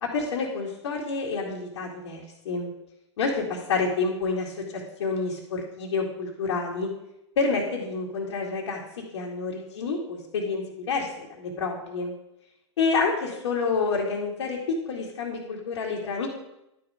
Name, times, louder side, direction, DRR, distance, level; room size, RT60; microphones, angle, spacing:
voice 1, 0.0-2.7 3.2-4.5 5.0-6.9 7.4-8.8 9.1-10.6 10.9-12.1 12.8-16.3, left 4 dB, 65° left, -4 dB, 2.3 m, -28 dB
11.5 x 5.8 x 5.0 m, 0.86 s
hypercardioid pair, 120°, 16 cm